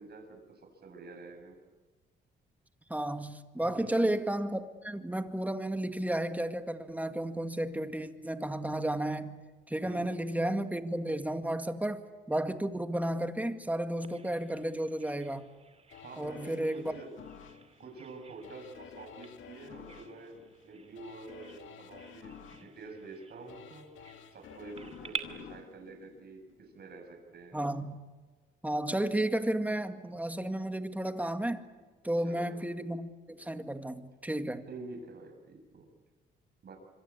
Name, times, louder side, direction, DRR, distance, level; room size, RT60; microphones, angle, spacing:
voice 1, 0.0-1.6 3.6-4.2 9.8-10.1 16.0-17.1 17.8-23.9 24.3-27.6 32.2-32.5 34.7-35.9 36.6-36.8, right 3 dB, 55° right, 4 dB, 7.3 m, -48 dB
voice 2, 2.9-9.4 9.7-15.5 16.2-16.9 27.5-28.0 28.6-31.6 32.0-34.7, right 1 dB, 10° right, 7 dB, 2.1 m, -33 dB
Bird vocalization bird call bird song, 14.0-25.2, right 5 dB, 30° right, 2.6 m, -49 dB
sound 1, 15.9-26.9 27.3-27.4, left 8 dB, 75° left, 2.1 m, -52 dB
26.0 x 25.5 x 8.6 m, 1.3 s
cardioid pair, 90°, 20 cm